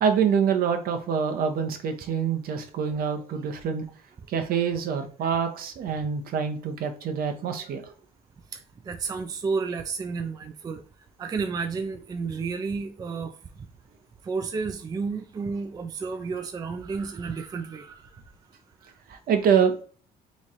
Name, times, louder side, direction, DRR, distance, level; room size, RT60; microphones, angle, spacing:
voice 1, 0.0-3.8 4.3-7.9 19.1-19.8, right 7 dB, 60° right, 0.8 m, -25 dB
voice 2, 8.5-10.8 11.2-13.7 14.2-18.1 18.8-18.9, right 4 dB, 20° right, 0.4 m, -32 dB
3.1 x 2.4 x 4.1 m
cardioid pair, 110°, 17 cm